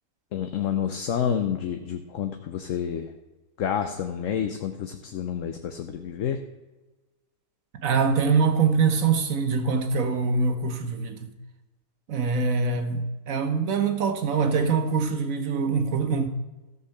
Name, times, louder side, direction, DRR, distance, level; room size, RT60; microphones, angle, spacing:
voice 1, 0.3-3.1 3.6-6.4, left 8 dB, 60° left, 1.0 m, -29 dB
voice 2, 7.7-11.3 12.1-16.3, right 5 dB, 60° right, 1.4 m, -24 dB
14.0 x 5.5 x 6.6 m
omnidirectional pair, 1.6 m